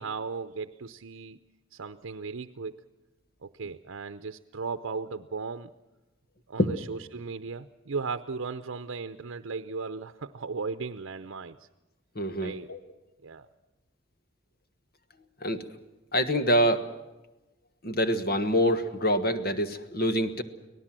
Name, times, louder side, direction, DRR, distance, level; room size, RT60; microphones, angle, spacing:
voice 1, 0.0-1.4 1.7-2.8 3.4-5.7 6.5-11.7 12.4-12.7 13.2-13.5, right 4 dB, 85° right, 9 dB, 0.7 m, -36 dB
voice 2, 12.1-12.8 15.4-15.6 16.1-16.9 17.8-20.4, equal, 50° left, 9 dB, 1.4 m, -25 dB
25.0 x 18.0 x 7.5 m, 1.0 s
head